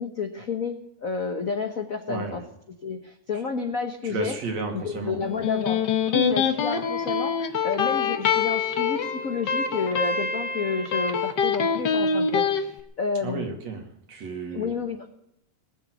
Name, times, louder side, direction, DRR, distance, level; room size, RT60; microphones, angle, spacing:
voice 1, 0.0-2.4 2.8-4.4 4.7-13.5 14.5-15.1, left 5 dB, 85° left, 5 dB, 0.7 m, -30 dB
voice 2, 2.1-2.4 4.0-5.2 13.2-13.8 14.1-14.7, right 4 dB, 65° right, 3 dB, 3.6 m, -32 dB
Electric guitar, 5.2-12.6, left 6 dB, 50° left, 1.4 m, -25 dB
19.5 x 7.1 x 9.5 m, 0.77 s
omnidirectional pair, 3.4 m